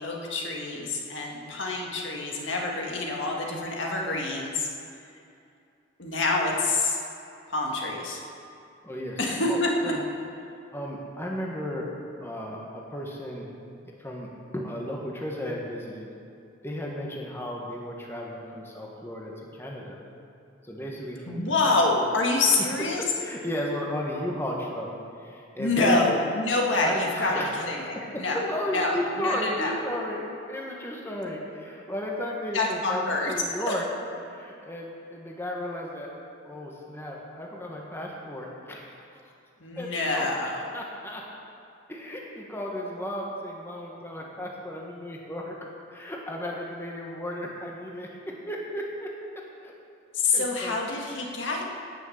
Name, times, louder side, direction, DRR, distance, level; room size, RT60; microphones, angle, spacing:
voice 1, 0.0-4.7 6.0-7.0 7.5-8.2 9.2-9.9 21.3-23.0 25.6-28.4 28.7-29.7 32.5-33.3 33.7-33.8 39.6-40.7 50.1-51.6, left 2 dB, 65° left, -1 dB, 1.9 m, -26 dB
voice 2, 8.8-9.2 9.5-10.0 10.4-11.9 12.2-13.5 14.0-14.3 14.5-16.1 16.6-20.0 20.6-21.4 21.6-21.7 23.0-24.9 25.2-26.0 26.8-27.5 28.1-33.0 33.3-33.8 34.3-36.1 36.4-39.3 39.8-40.3 40.7-41.2 41.9-45.5 45.9-49.1 49.6-49.7 50.3-50.8 51.2-51.4, left 1 dB, 10° left, -2 dB, 1.4 m, -34 dB
17.5 x 6.4 x 6.5 m, 2.5 s
head